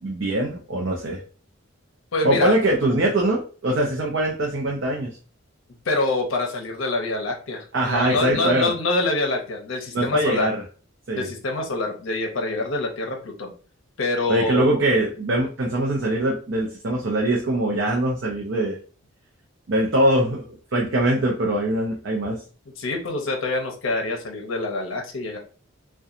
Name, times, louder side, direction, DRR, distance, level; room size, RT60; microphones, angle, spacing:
voice 1, 0.0-1.2 2.2-5.2 7.7-8.7 9.9-10.6 11.1-11.3 14.3-18.8 19.7-22.4, right 1 dB, 60° right, -2 dB, 0.5 m, -22 dB
voice 2, 2.1-2.5 5.9-10.5 11.2-13.5 14.0-14.8 22.8-25.4, left 2 dB, 70° left, 2 dB, 0.6 m, -26 dB
2.8 x 2.2 x 2.4 m, 0.38 s
head